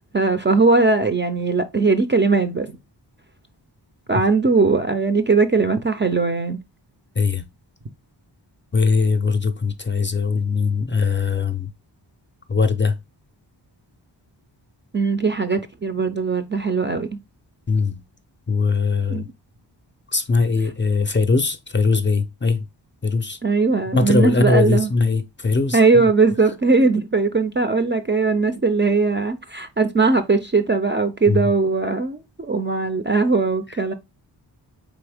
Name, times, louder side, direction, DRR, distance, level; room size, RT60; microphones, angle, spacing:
voice 1, 0.1-2.7 4.1-6.6 14.9-17.1 19.1-19.3 23.4-24.9 25.7-33.9, right 4 dB, 25° right, 0.4 m, -19 dB
voice 2, 8.7-11.7 12.5-12.9 17.7-18.0 18.5-19.3 20.1-22.6 23.0-23.4 23.9-26.1 31.3-31.5, left 4 dB, 25° left, 0.5 m, -20 dB
4.2 x 3.5 x 3.3 m
wide cardioid pair, 85°, 45 cm